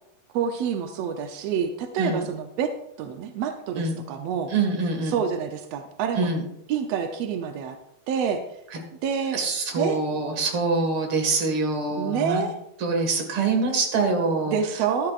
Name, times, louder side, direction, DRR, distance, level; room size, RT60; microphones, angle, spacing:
voice 1, 0.3-2.7 3.0-4.5 5.0-6.3 6.7-7.8 8.1-8.4 9.0-9.4 9.8-10.0 12.0-12.5 14.5-15.1, right 7 dB, 80° right, 6 dB, 1.4 m, -27 dB
voice 2, 4.5-5.2 6.2-6.4 8.7-8.8 9.3-12.4 12.8-14.6, right 3 dB, 45° right, 3 dB, 2.3 m, -25 dB
13.5 x 12.5 x 2.5 m, 0.80 s
omnidirectional pair, 3.7 m